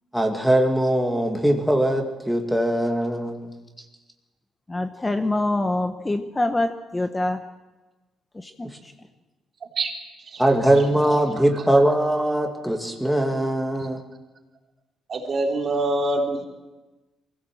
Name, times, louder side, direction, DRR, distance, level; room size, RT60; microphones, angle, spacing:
voice 1, 0.1-3.5 3.8-3.9 8.6-8.8 10.4-14.0, right 1 dB, ahead, 2 dB, 2.3 m, -21 dB
voice 2, 4.7-7.4 8.3-8.5, left 2 dB, 15° left, 7 dB, 0.9 m, -25 dB
voice 3, 9.6-9.9 10.2-10.4 15.1-16.5, right 2 dB, 45° right, 1 dB, 3.4 m, -25 dB
23.0 x 16.5 x 7.6 m, 1.1 s
cardioid pair, 120°, 0 cm